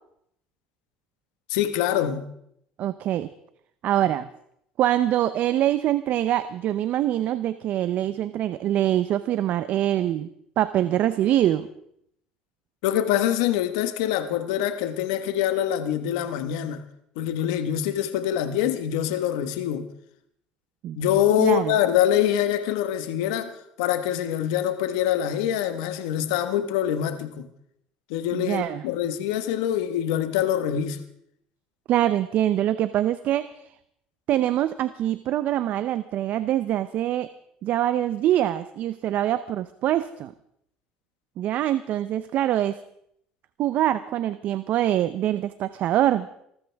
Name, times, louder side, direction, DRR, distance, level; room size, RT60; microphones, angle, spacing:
voice 1, 1.5-2.3 12.8-16.8 17.1-19.9 20.9-27.5 28.1-31.0, left 11 dB, 90° left, 1.4 m, -25 dB
voice 2, 2.8-3.3 3.8-4.3 4.8-10.3 10.6-11.7 20.8-21.0 21.4-21.8 28.3-28.8 31.9-33.5 34.3-37.3 37.6-40.3 41.4-42.8 43.6-46.3, right 12 dB, 60° right, 0.6 m, -24 dB
24.0 x 14.0 x 3.5 m
supercardioid pair, 95°, 3 cm